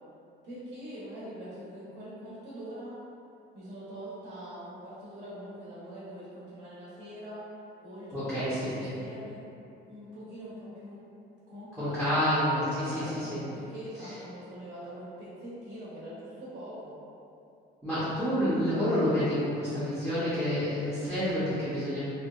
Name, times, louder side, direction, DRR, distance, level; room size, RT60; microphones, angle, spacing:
voice 1, 0.4-3.0 3.5-7.4 7.8-9.4 9.9-11.0 11.5-12.2 12.9-17.0, equal, 60° right, -9 dB, 0.7 m, -43 dB
voice 2, 8.1-8.9 11.8-13.4 14.0-14.1 17.8-22.0, equal, ahead, -13 dB, 0.5 m, -29 dB
2.7 x 2.1 x 2.2 m, 2.7 s
cardioid pair, 155°, 20 cm